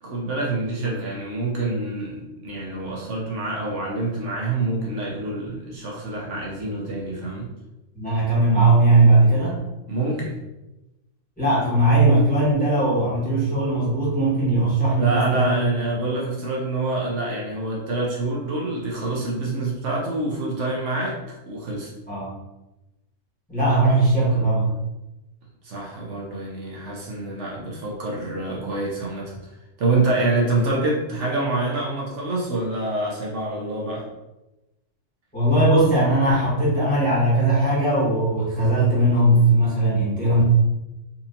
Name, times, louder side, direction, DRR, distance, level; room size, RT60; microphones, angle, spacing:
voice 1, 0.0-7.5 9.9-10.4 15.0-21.9 25.6-29.4 29.8-34.1, right 2 dB, 70° right, -3 dB, 1.1 m, -26 dB
voice 2, 7.9-9.6 11.4-15.5 22.1-22.3 23.5-24.7 35.3-40.4, right 2 dB, 5° left, -9 dB, 1.4 m, -19 dB
4.2 x 2.7 x 2.7 m, 0.98 s
omnidirectional pair, 1.3 m